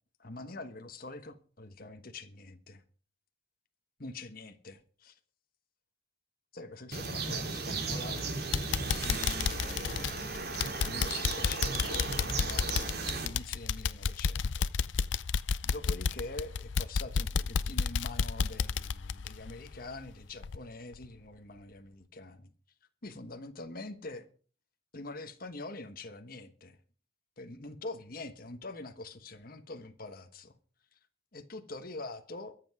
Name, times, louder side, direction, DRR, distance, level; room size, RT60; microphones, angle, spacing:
voice 1, 0.2-2.8 4.0-5.2 6.5-8.3 8.8-14.7 15.6-22.5 23.0-24.3 24.9-26.8 27.4-30.5 31.3-32.5, left 2 dB, 50° left, 1.3 m, -45 dB
sound 1, 6.9-13.3, right 4 dB, 55° right, 3.0 m, -35 dB
sound 2, 7.9-8.2 8.5-20.1 20.4-20.6 21.0-21.1, left 5 dB, 80° left, 0.6 m, -31 dB
23.0 x 7.8 x 4.9 m
head